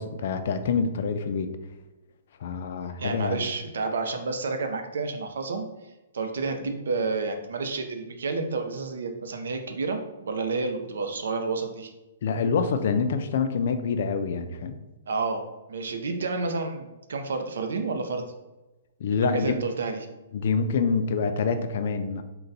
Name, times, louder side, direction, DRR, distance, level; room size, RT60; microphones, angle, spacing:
voice 1, 0.0-1.5 2.4-3.4 12.2-14.8 19.0-19.5 20.3-22.2, left 5 dB, 50° left, 8 dB, 0.4 m, -26 dB
voice 2, 3.0-5.7 6.1-11.9 15.1-15.4 15.7-18.2 19.2-20.1, right 4 dB, 80° right, 6 dB, 0.6 m, -30 dB
3.9 x 2.2 x 4.0 m, 1.1 s
hypercardioid pair, 170°, 0 cm